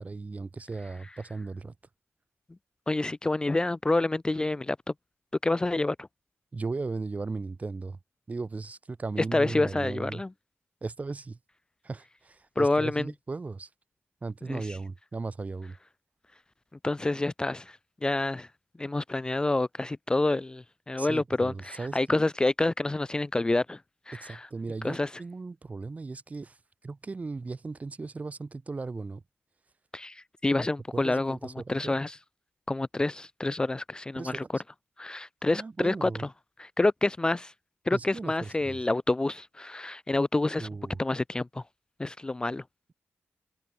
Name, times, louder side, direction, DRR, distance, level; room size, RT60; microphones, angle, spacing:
voice 1, 0.0-1.7 6.5-8.0 8.3-10.2 10.8-11.4 11.8-13.7 14.2-15.8 21.0-22.2 24.2-26.6 26.8-29.2 30.9-32.0 34.1-34.5 35.5-36.3 37.9-38.8 40.6-41.0, right 3 dB, 30° right, 4.5 m, -37 dB
voice 2, 2.9-4.8 5.4-6.1 9.3-10.3 12.6-13.1 14.5-14.6 16.8-18.5 18.8-23.8 24.1-24.5 24.8-25.1 29.9-31.4 31.7-32.2 32.7-34.4 35.0-36.1 36.6-37.5 37.9-40.7 41.0-41.6 42.0-42.6, left 2 dB, 15° left, 0.5 m, -28 dB
wide cardioid pair, 140°, 5 cm